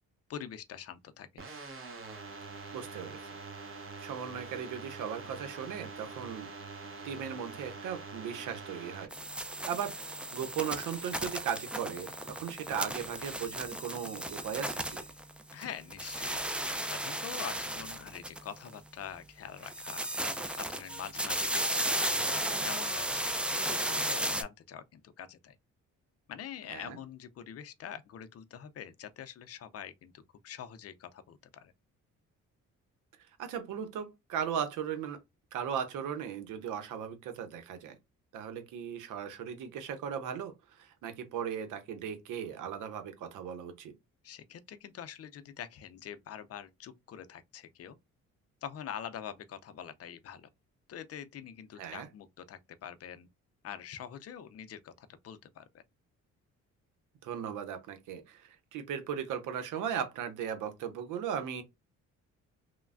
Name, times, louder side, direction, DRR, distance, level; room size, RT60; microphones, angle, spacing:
voice 1, 0.3-1.4 15.5-16.5 16.8-25.6 26.3-31.7 44.2-48.0 48.6-50.5 50.9-53.3 53.6-55.8, left 9 dB, 55° left, 0.5 m, -45 dB
sound 1, 1.4-9.1, right 4 dB, 45° right, 0.8 m, -45 dB
voice 2, 2.7-3.2 4.0-6.5 7.0-9.1 9.6-15.0 26.7-27.0 33.4-35.2 35.5-38.0 38.3-43.9 51.8-52.1 57.2-61.6, right 8 dB, 90° right, 0.8 m, -37 dB
sound 2, 9.1-15.6 15.9-18.7 19.6-24.4, right 1 dB, 5° right, 0.3 m, -34 dB
3.1 x 2.1 x 2.4 m
cardioid pair, 90°, 30 cm